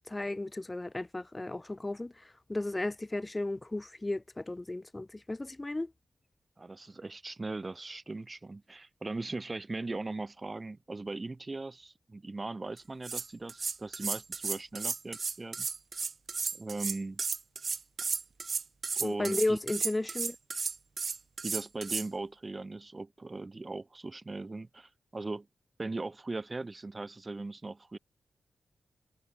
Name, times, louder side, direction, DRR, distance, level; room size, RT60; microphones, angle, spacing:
voice 1, 0.1-2.1 2.5-5.9 19.0-20.4, left 2 dB, 20° left, 0.4 m, -34 dB
voice 2, 6.6-15.7 16.5-17.2 19.0-19.6 21.4-25.5 25.8-28.0, right 3 dB, 30° right, 1.9 m, -39 dB
sound 1, 12.8-12.9 13.0-22.1, right 5 dB, 55° right, 0.6 m, -34 dB
cardioid pair, 65°, 0 cm